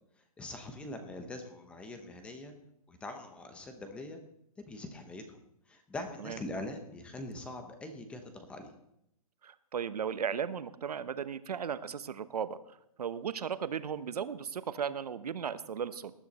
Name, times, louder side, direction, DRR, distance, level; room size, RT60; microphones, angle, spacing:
voice 1, 0.4-2.5 2.9-4.2 4.6-5.4 5.7-8.7, left 2 dB, 5° left, 6 dB, 0.9 m, -43 dB
voice 2, 9.4-16.1, right 7 dB, 85° right, 14 dB, 1.0 m, -36 dB
19.0 x 10.5 x 4.2 m, 0.78 s
hypercardioid pair, 165°, 19 cm